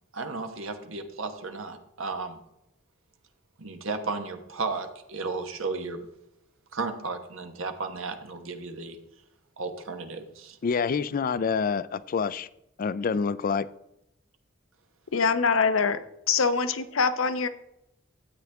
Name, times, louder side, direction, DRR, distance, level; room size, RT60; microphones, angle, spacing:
voice 1, 0.1-2.4 3.6-6.1 6.7-9.0 9.6-10.6, right 3 dB, 85° right, 6 dB, 1.3 m, -34 dB
voice 2, 10.6-12.5 12.8-13.7, left 5 dB, 45° left, 17 dB, 0.4 m, -27 dB
voice 3, 15.1-17.5, left 5 dB, 85° left, 12 dB, 0.8 m, -24 dB
12.5 x 8.5 x 3.5 m, 0.84 s
head